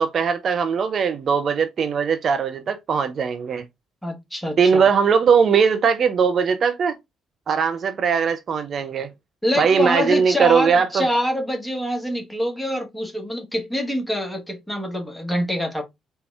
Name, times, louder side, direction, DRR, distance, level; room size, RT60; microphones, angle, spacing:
voice 1, 0.0-3.6 4.6-6.9 7.5-9.1 9.6-11.1, right 6 dB, 45° right, 0.4 m, -20 dB
voice 2, 4.0-4.9 9.4-15.8, left 1 dB, 10° left, 1.2 m, -25 dB
4.1 x 2.2 x 3.2 m
figure-of-eight pair, 45°, 0 cm